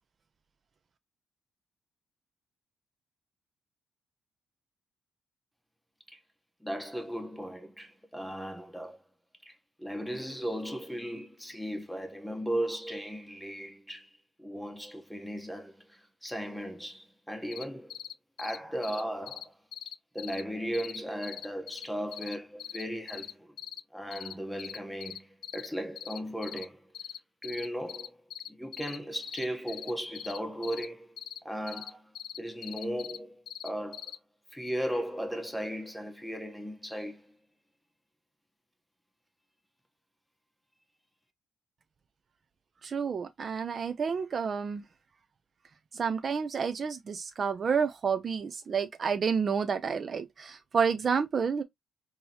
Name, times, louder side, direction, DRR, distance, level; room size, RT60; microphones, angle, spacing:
voice 1, 6.6-9.0 9.4-18.0 18.4-19.5 20.1-23.5 23.9-26.8 27.4-28.2 28.6-32.1 32.4-34.0 34.5-37.3, equal, ahead, 0.9 m, -37 dB
sound 1, 17.5-17.6 17.9-18.1 18.4-18.6 18.8-19.0 19.3-19.4 19.7-20.4 20.7-21.0 21.2-21.9 22.1-23.3 23.6-23.8 24.1-24.3 24.6-25.7 26.0-26.7 26.9-27.2 27.4-29.0 29.2-30.9 31.2-31.4 31.7-31.9 32.2-33.2 33.5-34.2, left 10 dB, 75° left, 0.3 m, -41 dB
voice 2, 42.8-44.8 45.9-51.6, right 6 dB, 45° right, 0.4 m, -30 dB
3.8 x 2.8 x 2.8 m
cardioid pair, 90°, 0 cm